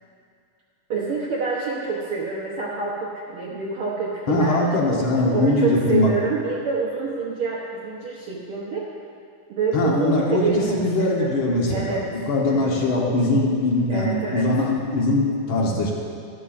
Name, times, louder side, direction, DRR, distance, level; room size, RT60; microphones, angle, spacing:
voice 1, 0.9-8.9 9.5-12.1 12.5-12.7 13.9-14.5, right 4 dB, 70° right, -4 dB, 1.3 m, -27 dB
voice 2, 4.3-6.1 9.7-12.0 12.3-15.9, left 2 dB, 60° left, -2 dB, 1.5 m, -21 dB
13.0 x 13.0 x 2.5 m, 2.3 s
omnidirectional pair, 3.6 m